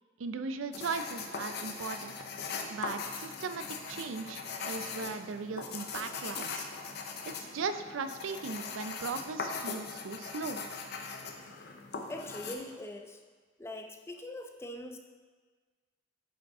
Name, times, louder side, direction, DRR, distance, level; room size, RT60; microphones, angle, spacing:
voice 1, 0.2-2.1 2.7-6.7 7.3-10.6, right 4 dB, 85° right, 10 dB, 0.4 m, -38 dB
sound 1, 0.7-12.6, left 4 dB, 55° left, 0.6 m, -40 dB
voice 2, 12.1-13.2 13.6-15.0, left 1 dB, 15° left, 4 dB, 0.4 m, -42 dB
8.1 x 5.1 x 3.6 m, 1.5 s
head